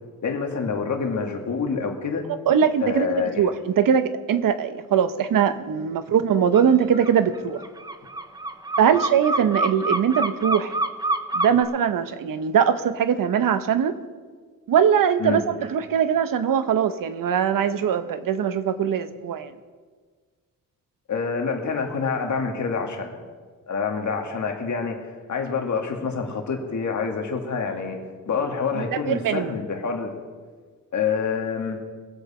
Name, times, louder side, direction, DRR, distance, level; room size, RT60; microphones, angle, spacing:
voice 1, 0.2-2.2 2.8-3.5 8.9-9.0 15.2-15.4 21.1-23.2 23.7-28.0 28.3-30.1 30.9-31.8, left 5 dB, 55° left, 2 dB, 2.2 m, -27 dB
voice 2, 2.5-7.6 8.8-10.7 11.3-13.9 14.7-15.4 15.7-19.5 29.1-29.5, right 8 dB, 70° right, 12 dB, 0.9 m, -21 dB
sound 1, 6.5-6.7 6.9-11.6, right 2 dB, 10° right, 0.7 m, -26 dB
22.5 x 8.1 x 4.3 m, 1.5 s
cardioid pair, 105°, 34 cm